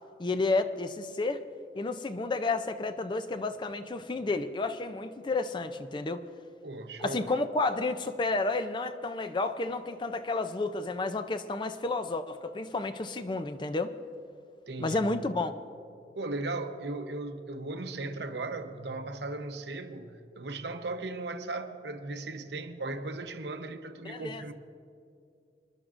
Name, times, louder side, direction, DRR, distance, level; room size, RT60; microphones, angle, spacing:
voice 1, 0.2-1.4 1.7-6.2 7.0-14.0 14.8-15.5 24.0-24.4, left 3 dB, 25° left, 0.4 m, -31 dB
voice 2, 6.6-7.3 14.7-15.1 16.1-24.5, right 2 dB, 70° right, 0.9 m, -37 dB
26.5 x 11.0 x 2.5 m
head